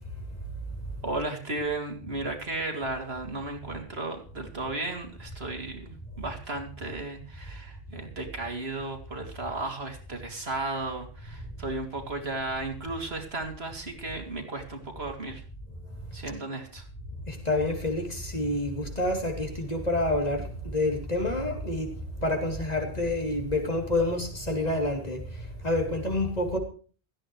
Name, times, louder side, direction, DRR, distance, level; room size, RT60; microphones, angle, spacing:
voice 1, 1.0-15.4 16.1-16.9, right 2 dB, 65° right, 3.0 m, -34 dB
voice 2, 17.3-26.6, left 2 dB, 35° left, 3.3 m, -28 dB
17.0 x 14.0 x 3.2 m
omnidirectional pair, 1.1 m